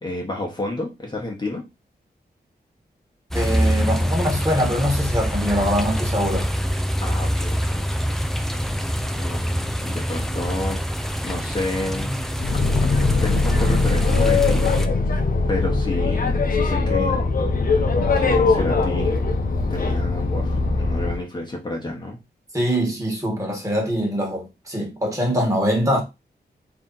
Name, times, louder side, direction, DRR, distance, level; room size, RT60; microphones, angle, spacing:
voice 1, 0.0-1.6 7.0-7.8 9.1-10.8 11.2-12.1 13.2-14.8 15.5-17.2 18.2-19.3 19.7-22.2, left 2 dB, 25° left, 1.0 m, -30 dB
sound 1, 3.3-14.9, equal, ahead, 0.4 m, -25 dB
voice 2, 3.3-6.5 22.5-26.0, equal, 20° right, 1.4 m, -23 dB
Boat Water vehicle, 12.4-21.2, left 3 dB, 55° left, 0.7 m, -20 dB
3.3 x 2.8 x 3.9 m
wide cardioid pair, 115°, 17 cm